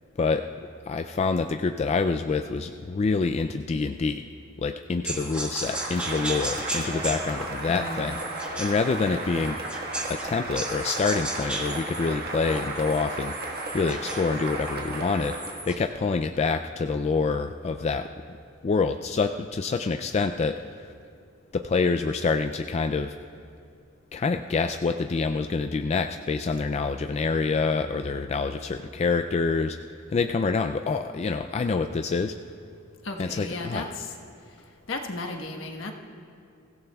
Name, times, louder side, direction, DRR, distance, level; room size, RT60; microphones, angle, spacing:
voice 1, 0.2-4.3 4.6-8.2 8.6-9.6 10.1-18.1 18.6-20.9 21.5-23.2 24.1-29.8 30.1-32.4 33.2-33.9, left 4 dB, 35° left, 7 dB, 0.3 m, -27 dB
sound 1, 5.0-10.3 10.5-15.9, right 1 dB, 5° right, 1.5 m, -36 dB
Cheering / Applause, 5.6-15.7, right 2 dB, 50° right, 1.5 m, -34 dB
voice 2, 7.7-8.1 33.0-34.1 34.9-35.9, left 2 dB, 70° left, 3 dB, 1.3 m, -34 dB
23.5 x 16.0 x 2.3 m, 2.6 s
head